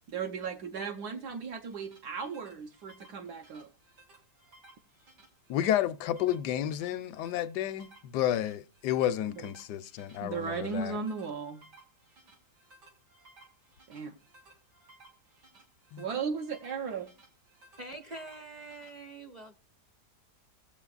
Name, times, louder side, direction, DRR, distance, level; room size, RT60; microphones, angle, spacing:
voice 1, 0.1-3.7 9.4-9.5 10.2-11.6 13.9-14.1 16.0-17.1, right 5 dB, 70° right, 1.4 m, -36 dB
sound 1, 1.4-18.9, right 2 dB, 90° right, 3.2 m, -60 dB
voice 2, 5.5-11.0 15.9-16.0, left 11 dB, 80° left, 1.2 m, -31 dB
voice 3, 17.8-19.6, right 2 dB, 35° right, 0.7 m, -44 dB
19.0 x 7.5 x 2.4 m
omnidirectional pair, 1.8 m